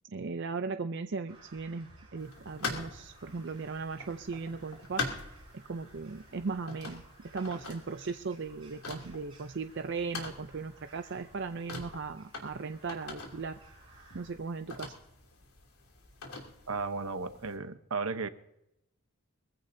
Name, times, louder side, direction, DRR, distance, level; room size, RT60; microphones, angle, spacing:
voice 1, 0.1-5.3 5.5-7.0 7.3-13.6 14.1-14.9, right 4 dB, 55° right, 8 dB, 0.5 m, -37 dB
Crow, 1.3-14.4, right 2 dB, 25° right, 7.3 m, -58 dB
sound 1, 2.2-17.5, left 4 dB, 85° left, 2.9 m, -44 dB
voice 2, 16.7-18.3, right 4 dB, 75° right, 10 dB, 0.9 m, -34 dB
22.0 x 15.0 x 2.7 m, 0.82 s
head